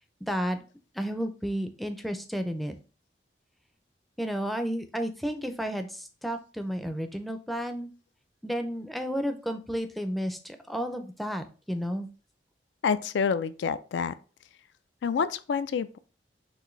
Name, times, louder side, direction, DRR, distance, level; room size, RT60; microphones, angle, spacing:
voice 1, 0.3-0.6 1.0-2.7 4.2-7.9 8.4-12.1, equal, ahead, 0.4 m, -32 dB
voice 2, 12.8-14.1 15.0-16.0, left 6 dB, 75° left, 0.3 m, -28 dB
6.1 x 2.6 x 3.1 m
head